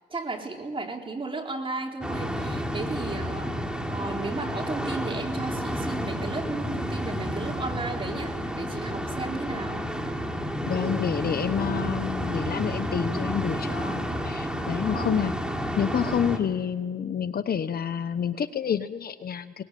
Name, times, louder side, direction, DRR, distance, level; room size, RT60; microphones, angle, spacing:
voice 1, 0.1-3.6 3.9-9.9 14.9-15.3, right 3 dB, 25° right, 2 dB, 4.1 m, -34 dB
sound 1, 2.0-16.4, equal, 5° right, 3.3 m, -30 dB
voice 2, 10.6-15.3 15.8-19.6, left 8 dB, 50° left, 11 dB, 1.2 m, -28 dB
23.5 x 20.5 x 9.3 m, 1.3 s
cardioid pair, 90°, 20 cm